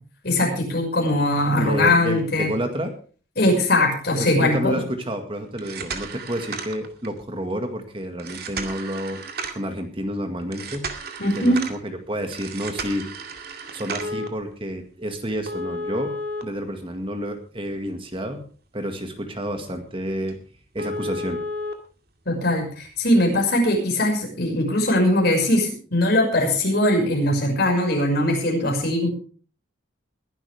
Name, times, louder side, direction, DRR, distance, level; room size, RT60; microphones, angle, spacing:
voice 1, 0.2-2.5 3.4-4.8 11.2-11.6 22.3-29.1, left 1 dB, 50° left, 2 dB, 6.0 m, -21 dB
voice 2, 1.6-2.9 4.1-9.2 9.5-10.9 11.2-13.1 13.7-16.1 16.4-18.5 18.7-20.4 20.7-21.4, right 1 dB, 25° right, 5 dB, 1.9 m, -29 dB
sound 1, 5.5-7.2 8.2-9.7 10.5-11.8 12.3-14.3 15.5-17.3 17.8-17.9 18.4-18.5 19.0-19.1 19.4-19.5 19.9-20.0 20.3-20.4 20.8-21.7 22.8-22.9, right 1 dB, 50° right, 2.2 m, -33 dB
21.0 x 11.5 x 3.5 m, 0.40 s
head